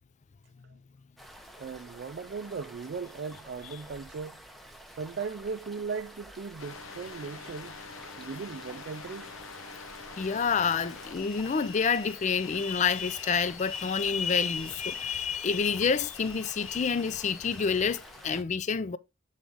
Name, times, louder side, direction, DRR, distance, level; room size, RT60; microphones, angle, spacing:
sound 1, 1.2-18.4, equal, ahead, 0.7 m, -50 dB
voice 1, 1.6-4.4 4.9-7.8 8.2-9.3, right 5 dB, 55° right, 0.4 m, -38 dB
sound 2, 6.6-18.2, left 6 dB, 85° left, 0.7 m, -45 dB
voice 2, 10.2-19.0, left 6 dB, 35° left, 0.4 m, -28 dB
7.6 x 4.0 x 3.5 m
head